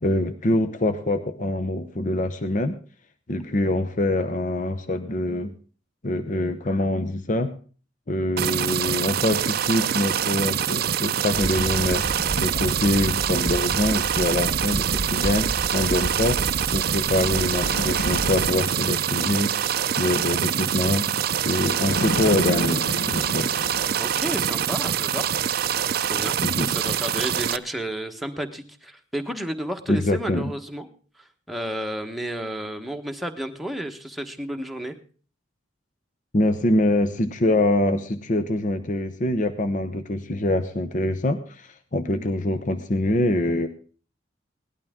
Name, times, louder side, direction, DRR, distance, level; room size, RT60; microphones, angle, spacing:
voice 1, 0.0-2.8 3.3-5.5 6.0-7.5 8.1-16.4 16.7-21.1 21.4-23.5 26.4-26.7 29.9-30.5 36.3-43.7, left 1 dB, 40° left, 8 dB, 0.8 m, -24 dB
sound 1, 8.4-27.6, right 9 dB, 50° right, 0.5 m, -25 dB
Fire, 11.3-18.5, right 2 dB, 35° right, 0.9 m, -31 dB
Bird, 17.6-19.0 21.8-24.4, left 1 dB, 70° left, 1.0 m, -30 dB
voice 2, 24.0-25.3 26.0-30.9 31.5-35.0, right 1 dB, ahead, 4 dB, 1.1 m, -32 dB
18.0 x 11.5 x 3.6 m, 0.39 s
head